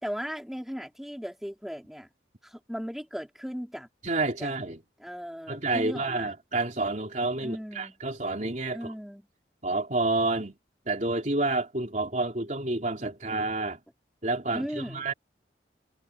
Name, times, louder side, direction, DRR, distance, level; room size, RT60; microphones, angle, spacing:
voice 1, 0.0-2.1 2.4-3.9 4.4-4.5 5.0-6.3 7.4-7.9 8.7-9.3 14.5-15.1, equal, ahead, 4.5 m, -37 dB
voice 2, 4.0-4.8 5.5-8.9 9.6-10.5 10.9-13.8 14.2-15.1, right 2 dB, 40° right, 3.5 m, -29 dB
head